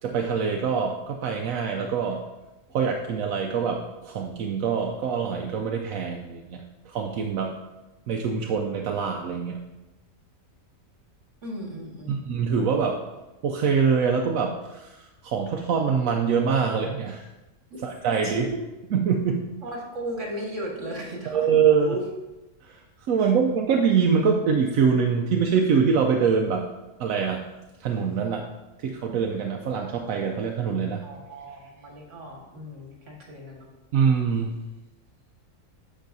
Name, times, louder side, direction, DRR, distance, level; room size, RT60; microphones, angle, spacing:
voice 1, 0.0-2.2 2.7-7.5 8.1-9.6 12.1-13.0 13.4-17.3 17.8-18.5 18.9-19.5 21.3-22.0 22.6-22.8 23.1-26.6 27.0-27.4 27.8-28.5 28.8-31.0 33.9-34.6, right 6 dB, 85° right, 2 dB, 1.0 m, -24 dB
voice 2, 11.4-12.3 17.7-17.8 18.2-18.6 19.6-21.5 21.8-22.0 23.2-23.3 31.0-33.7, right 1 dB, 65° right, -1 dB, 1.9 m, -36 dB
9.9 x 6.4 x 2.7 m, 1.1 s
omnidirectional pair, 1.4 m